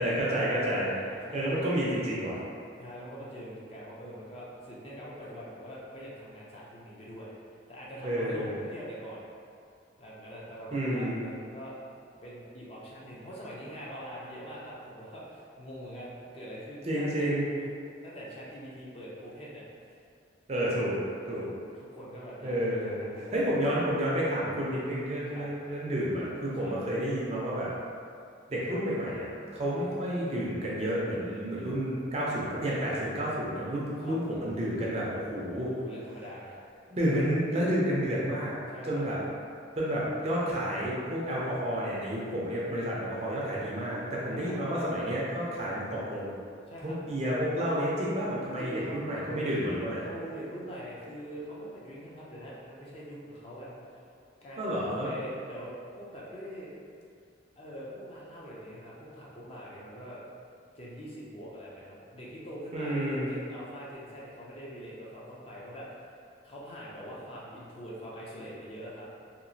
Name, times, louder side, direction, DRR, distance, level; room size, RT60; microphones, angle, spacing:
voice 1, 0.0-0.9 1.3-2.4 8.0-8.6 10.7-11.2 16.9-17.5 20.5-21.0 21.3-21.5 22.4-23.0 23.3-27.7 28.5-29.3 29.5-35.7 36.9-38.5 38.8-39.2 39.8-46.4 46.8-50.0 54.6-55.1 62.7-63.3, equal, 35° right, -6 dB, 0.4 m, -30 dB
voice 2, 0.9-1.5 2.8-7.3 7.7-9.2 10.0-11.7 12.2-17.7 18.0-19.6 21.3-23.8 25.2-25.5 26.5-26.7 28.7-28.8 29.7-29.9 34.0-34.2 35.5-36.6 38.7-39.1 44.3-44.6 46.7-46.9 48.6-48.9 50.0-54.0 54.4-56.7 57.6-60.2 60.7-66.2 66.4-69.1, equal, 30° left, -6 dB, 0.4 m, -43 dB
2.9 x 2.4 x 2.6 m, 2.3 s
head